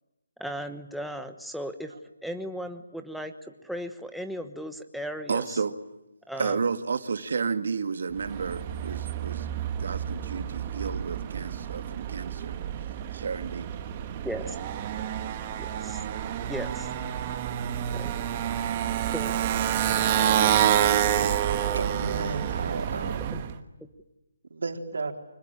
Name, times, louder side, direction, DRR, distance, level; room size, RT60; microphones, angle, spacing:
voice 1, 0.4-1.9 2.2-5.6 6.3-6.6 14.2-14.6 15.5-16.0 16.4-16.9 17.9-18.2 19.0-19.4 23.3-23.4, equal, ahead, 5 dB, 1.1 m, -36 dB
voice 2, 5.3-5.8 6.4-9.5 9.8-12.6 13.1-13.7 14.4-14.6, right 5 dB, 50° right, 10 dB, 2.0 m, -31 dB
Motorcycle, 8.2-23.5, right 10 dB, 20° right, 1.3 m, -28 dB
voice 3, 21.7-23.5 24.5-25.1, right 3 dB, 75° right, 4 dB, 3.9 m, -33 dB
25.5 x 22.0 x 10.0 m, 0.92 s
hypercardioid pair, 175°, 0 cm